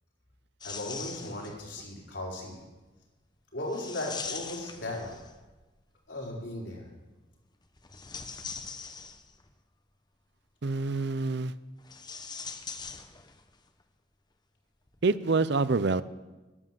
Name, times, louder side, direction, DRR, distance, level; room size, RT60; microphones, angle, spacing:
voice 1, 0.6-2.6 3.5-5.2 6.1-6.9, left 1 dB, 70° left, -2 dB, 4.4 m, -37 dB
sound 1, 0.6-1.7 3.7-5.5 7.8-9.5 11.8-13.6 13.8-13.9 14.9-15.0, left 5 dB, 25° left, 0.9 m, -41 dB
voice 2, 10.6-11.5 15.0-16.0, right 3 dB, 65° right, 15 dB, 0.6 m, -26 dB
11.5 x 11.0 x 7.6 m, 1.2 s
head